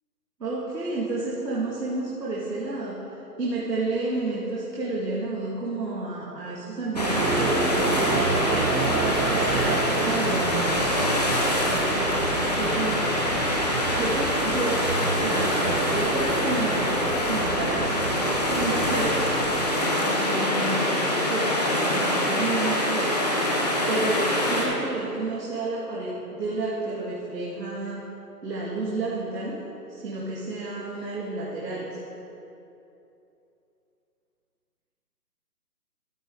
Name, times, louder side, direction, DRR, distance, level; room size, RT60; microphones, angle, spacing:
voice 1, 0.4-3.0 3.4-8.8 9.3-10.7 11.6-13.4 13.9-17.9 18.6-19.2 20.0-23.1 23.9-28.0 28.4-29.6 29.9-32.0, right 2 dB, 85° right, -6 dB, 2.1 m, -31 dB
sound 1, 6.9-19.8, right 4 dB, 70° right, 0.9 m, -30 dB
sound 2, 7.0-24.7, left 1 dB, 25° left, 0.7 m, -25 dB
14.0 x 6.4 x 3.7 m, 2.8 s
hypercardioid pair, 170°, 48 cm